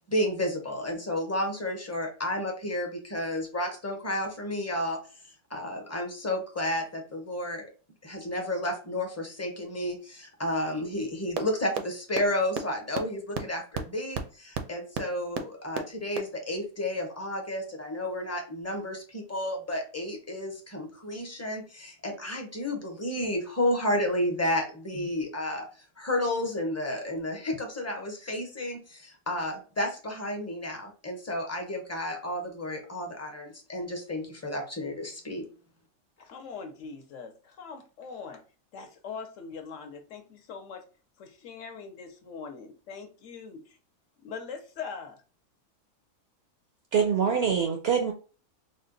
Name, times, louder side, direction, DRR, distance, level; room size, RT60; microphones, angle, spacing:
voice 1, 0.1-5.0 5.5-7.7 8.0-25.7 26.0-35.5, left 1 dB, 15° left, 0.5 m, -31 dB
sound 1, 11.4-11.5 11.8-11.9 12.2-12.3 12.5-12.6 12.9-13.0 13.3-13.4 13.7-13.8 14.1-14.2 14.5-14.6 14.9-15.0 15.3-15.4 15.8-15.9 16.2-16.3, right 7 dB, 80° right, 1.1 m, -29 dB
voice 2, 36.2-38.4 38.7-40.8 41.2-43.8 44.2-45.2, left 5 dB, 65° left, 1.0 m, -42 dB
voice 3, 46.9-48.1, right 7 dB, 65° right, 0.6 m, -24 dB
3.7 x 2.1 x 3.8 m
omnidirectional pair, 1.5 m